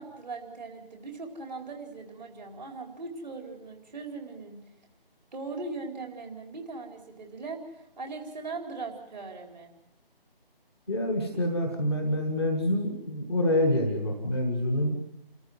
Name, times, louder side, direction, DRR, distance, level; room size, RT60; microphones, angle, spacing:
voice 1, 0.0-4.6 5.3-9.7, right 3 dB, 45° right, 3 dB, 4.5 m, -39 dB
voice 2, 10.9-15.0, left 1 dB, 5° right, 1 dB, 0.7 m, -27 dB
28.5 x 14.0 x 7.9 m, 0.81 s
figure-of-eight pair, 155°, 30 cm